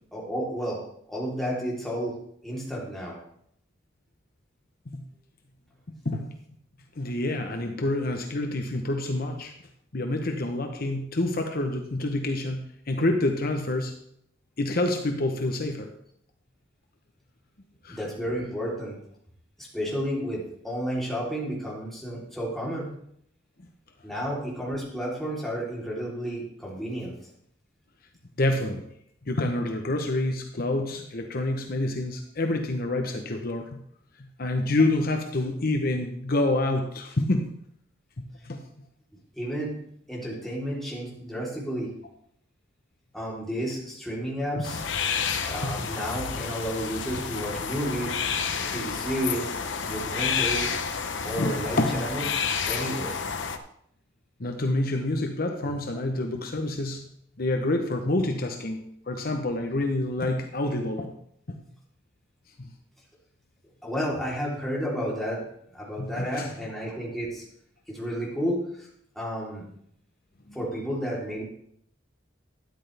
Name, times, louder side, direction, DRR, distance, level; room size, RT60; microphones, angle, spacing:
voice 1, 0.1-0.8 1.1-2.2 2.4-3.2 17.9-19.0 19.6-22.9 24.0-27.2 39.4-39.8 40.1-41.9 43.1-44.8 45.5-48.2 48.7-49.6 49.9-50.7 51.2-52.3 52.6-53.2 55.6-56.0 63.8-65.4 65.7-67.4 67.9-68.9 69.2-69.7 70.5-71.4, equal, ahead, -5 dB, 3.5 m, -31 dB
voice 2, 7.0-9.5 9.9-13.9 14.6-15.9 17.8-18.0 28.4-28.8 29.2-33.8 34.4-37.4 38.4-38.6 44.5-44.6 45.6-45.9 51.4-52.0 54.4-57.1 57.4-61.2 61.5-61.6 62.6-62.7 66.0-66.5 70.5-70.6, left 2 dB, 50° left, 4 dB, 0.9 m, -27 dB
sound 1, 44.6-53.6, left 6 dB, 80° left, 0.9 m, -30 dB
13.0 x 10.0 x 3.4 m, 0.70 s
head